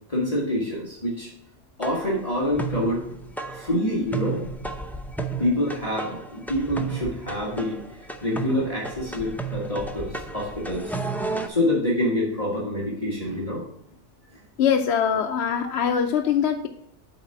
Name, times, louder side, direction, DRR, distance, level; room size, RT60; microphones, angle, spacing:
voice 1, 0.1-1.3 1.8-3.1 3.5-4.4 5.4-10.9 11.5-13.6 15.2-15.4, left 1 dB, 30° left, -4 dB, 1.8 m, -26 dB
sound 1, 1.8-11.5, right 4 dB, 5° left, 0.3 m, -33 dB
voice 2, 14.6-16.7, left 8 dB, 70° left, 4 dB, 0.9 m, -22 dB
7.4 x 4.1 x 5.8 m, 0.71 s
omnidirectional pair, 1.2 m